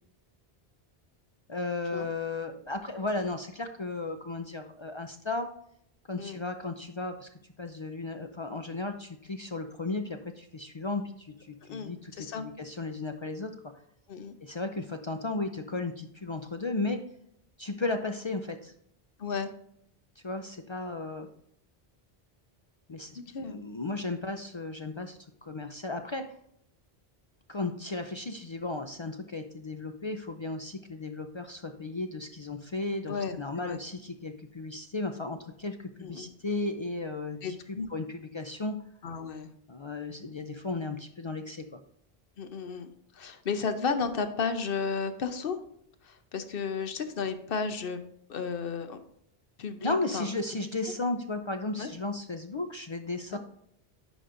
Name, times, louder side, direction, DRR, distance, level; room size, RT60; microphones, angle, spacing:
voice 1, 1.5-5.5 6.1-7.3 7.6-13.6 14.4-17.0 17.6-18.7 20.2-21.3 22.9-26.3 27.5-38.8 39.7-41.8 49.8-53.4, left 3 dB, 45° left, 6 dB, 0.4 m, -35 dB
voice 2, 11.7-12.5 14.1-14.3 19.2-19.5 23.1-23.6 33.1-33.8 36.0-36.3 37.4-37.9 39.0-39.5 42.4-45.6 46.0-48.0 48.3-49.0 49.6-50.3 51.8-51.9 53.3-53.4, left 5 dB, 65° left, 8 dB, 0.9 m, -33 dB
10.0 x 5.1 x 2.6 m, 0.71 s
omnidirectional pair, 1.0 m